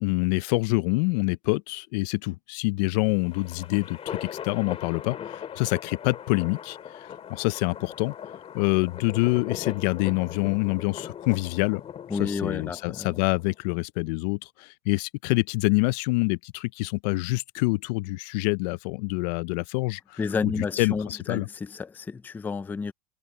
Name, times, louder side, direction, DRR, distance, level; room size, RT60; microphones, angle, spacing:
voice 1, 0.0-6.8 7.3-8.1 8.5-11.8 12.2-21.5, left 24 dB, 80° left, 0.5 m, -26 dB
sound 1, 3.0-13.5, left 9 dB, 30° left, 2.4 m, -40 dB
voice 2, 12.1-13.1 20.2-22.9, left 5 dB, 10° left, 0.3 m, -31 dB
cardioid pair, 155°, 21 cm